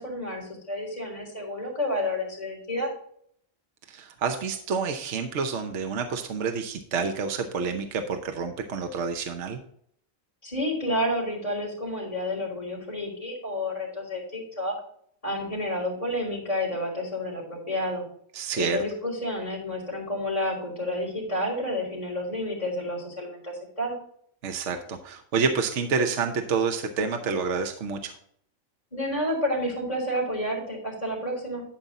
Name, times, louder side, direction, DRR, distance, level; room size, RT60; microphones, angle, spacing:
voice 1, 0.0-2.9 10.4-14.7 15.2-18.0 18.5-24.0 28.9-31.6, left 1 dB, 25° left, -4 dB, 4.1 m, -30 dB
voice 2, 3.9-9.6 18.3-18.8 24.4-28.1, right 5 dB, 65° right, 6 dB, 1.2 m, -28 dB
11.5 x 5.3 x 4.1 m, 0.64 s
omnidirectional pair, 1.4 m